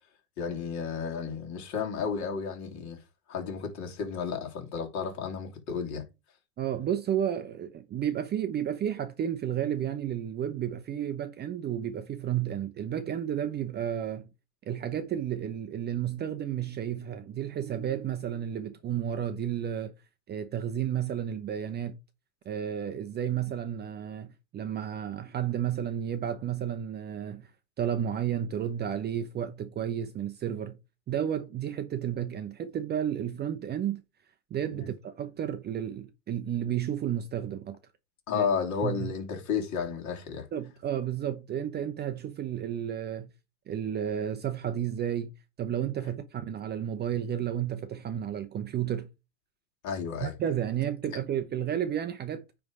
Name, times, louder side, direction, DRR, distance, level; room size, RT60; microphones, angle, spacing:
voice 1, 0.4-3.0 3.3-6.0 34.7-34.8 38.3-40.5 49.8-50.3, left 6 dB, 40° left, 3.0 m, -32 dB
voice 2, 6.6-14.3 14.7-19.9 20.3-22.0 22.4-27.5 27.8-30.8 31.1-34.0 34.5-37.8 38.3-38.5 38.8-39.1 40.5-43.3 43.7-45.3 45.6-49.1 50.2-52.4, right 10 dB, 25° right, 0.7 m, -32 dB
9.2 x 3.5 x 4.8 m
supercardioid pair, 125°, 42 cm